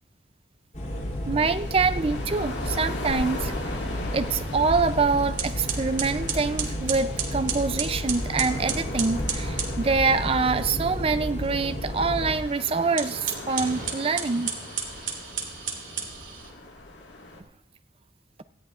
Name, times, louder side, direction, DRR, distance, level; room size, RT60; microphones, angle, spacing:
sound 1, 0.7-12.4, left 1 dB, 45° left, 3.1 m, -32 dB
voice 1, 1.3-3.5 4.1-14.5, right 4 dB, 30° right, 11 dB, 0.4 m, -25 dB
sound 2, 1.4-17.4, left 2 dB, 85° left, 1.9 m, -40 dB
sound 3, 5.4-9.8 12.8-16.5, right 6 dB, 45° right, 2.0 m, -33 dB
18.5 x 14.0 x 2.5 m, 0.82 s
head